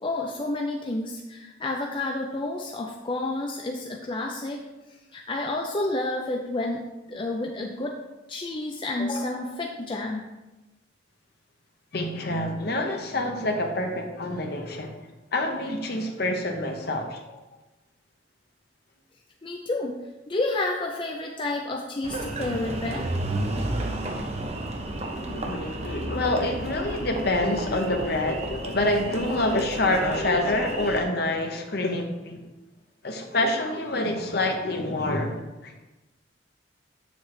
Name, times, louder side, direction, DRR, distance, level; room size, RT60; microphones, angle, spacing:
voice 1, 0.0-4.6 5.1-8.0 8.3-10.2 17.3-17.4 19.4-20.0 20.3-23.1, left 2 dB, 25° left, 0 dB, 0.5 m, -30 dB
voice 2, 11.9-14.9 15.3-17.2 25.2-32.4 33.0-35.7, left 1 dB, 55° left, 3 dB, 1.0 m, -27 dB
Engine, 22.0-31.0, right 1 dB, 35° right, 0.8 m, -32 dB
7.7 x 7.2 x 3.2 m, 1.1 s
head